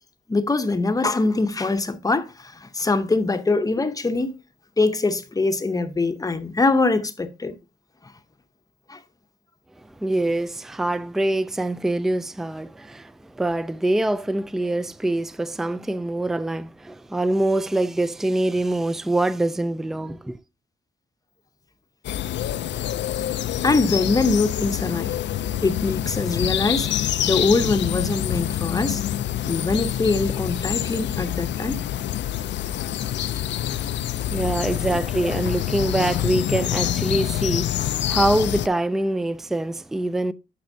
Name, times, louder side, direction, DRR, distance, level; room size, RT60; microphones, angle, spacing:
voice 1, 0.3-4.4 4.8-7.5 8.0-8.1 8.9-9.0 23.6-25.1 25.6-26.9 27.2-29.0 29.4-31.8 33.2-33.3, left 3 dB, 20° left, 0.7 m, -23 dB
voice 2, 10.0-20.4 34.2-40.3, right 1 dB, ahead, 0.3 m, -24 dB
sound 1, 22.0-38.7, left 11 dB, 85° left, 0.4 m, -26 dB
10.5 x 6.1 x 2.7 m
wide cardioid pair, 175°, 18 cm